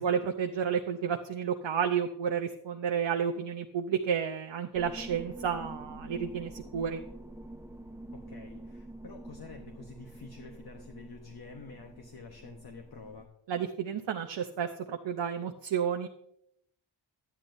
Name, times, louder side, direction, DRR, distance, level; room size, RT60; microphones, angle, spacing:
voice 1, 0.0-7.0 13.5-16.1, right 7 dB, 65° right, 5 dB, 0.7 m, -31 dB
sound 1, 4.7-13.3, right 1 dB, 5° right, 0.5 m, -46 dB
voice 2, 8.1-13.3, left 4 dB, 50° left, 3 dB, 1.0 m, -48 dB
11.5 x 9.9 x 2.6 m, 0.75 s
wide cardioid pair, 90°, 48 cm